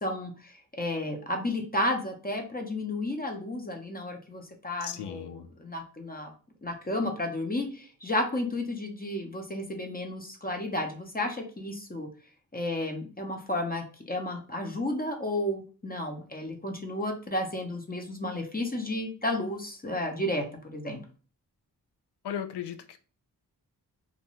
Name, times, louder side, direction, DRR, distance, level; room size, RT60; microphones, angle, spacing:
voice 1, 0.0-6.3 6.6-12.1 12.5-21.0, left 1 dB, 25° left, 0.7 m, -32 dB
voice 2, 4.8-5.5 22.2-23.0, left 9 dB, 80° left, 0.5 m, -36 dB
2.5 x 2.2 x 3.0 m
cardioid pair, 55°, 40 cm